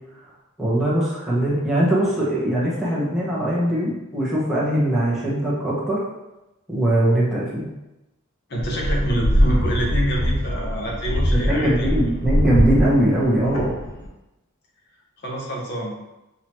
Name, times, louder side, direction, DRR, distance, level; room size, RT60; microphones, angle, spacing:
voice 1, 0.6-6.0 6.7-7.7 11.3-13.7, right 1 dB, ahead, -7 dB, 1.1 m, -21 dB
voice 2, 8.5-11.9 15.2-16.0, right 1 dB, 50° left, -1 dB, 1.0 m, -26 dB
sound 1, 8.6-14.1, equal, 85° left, 0.9 m, -22 dB
5.9 x 2.8 x 3.1 m, 0.98 s
head